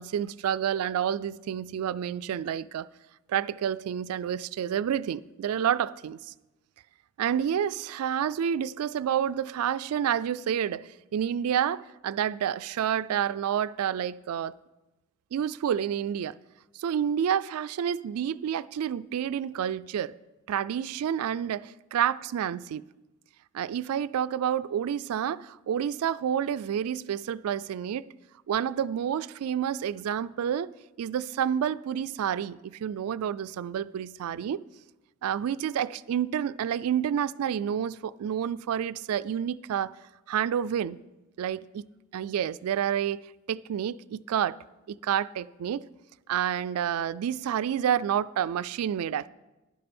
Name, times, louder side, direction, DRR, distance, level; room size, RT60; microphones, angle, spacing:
voice 1, 0.0-2.9 3.3-6.2 7.2-14.5 15.3-16.3 16.8-20.1 20.5-21.7 21.9-22.8 23.5-28.1 28.5-30.7 31.0-34.7 35.2-40.0 40.3-41.0 41.4-41.8 42.1-44.6 44.9-45.8 46.3-49.3, right 9 dB, 85° right, 0.3 m, -29 dB
11.0 x 10.5 x 4.3 m
head